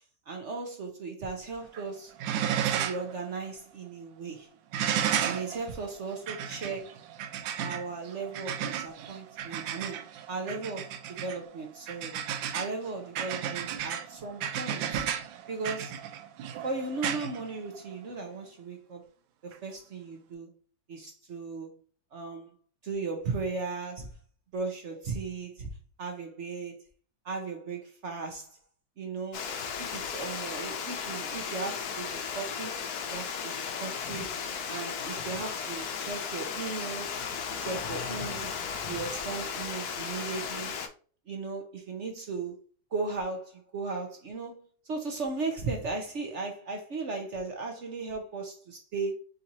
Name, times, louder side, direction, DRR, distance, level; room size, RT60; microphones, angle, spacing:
voice 1, 0.3-2.1 2.6-4.5 5.2-7.0 7.6-12.2 12.5-15.1 15.5-16.0 16.6-19.0 19.4-20.6 20.9-21.7 22.1-22.5 22.8-24.1 24.5-25.7 26.0-26.8 27.2-28.6 29.0-29.5 29.8-32.8 33.1-34.4 34.7-37.2 37.5-38.5 38.8-40.7 41.3-42.6 42.9-49.1, right 4 dB, 60° right, 0.7 m, -36 dB
sound 1, 1.6-1.9 2.2-3.1 3.5-3.6 4.7-18.1 19.5-19.6, right 9 dB, 80° right, 1.4 m, -34 dB
Water, 29.3-40.9, left 6 dB, 65° left, 1.1 m, -35 dB
4.3 x 3.9 x 2.7 m
omnidirectional pair, 2.2 m